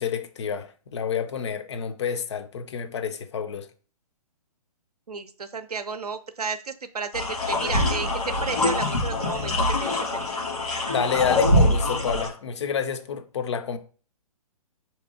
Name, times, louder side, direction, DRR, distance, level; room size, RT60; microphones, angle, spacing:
voice 1, 0.0-3.7 10.8-13.8, left 7 dB, 50° left, 0.5 m, -29 dB
voice 2, 5.1-8.1 8.4-9.5 9.8-10.3, right 4 dB, 85° right, 0.5 m, -33 dB
sound 1, 7.1-12.3, left 1 dB, 75° left, 1.4 m, -24 dB
4.6 x 2.8 x 2.6 m
figure-of-eight pair, 125°, 19 cm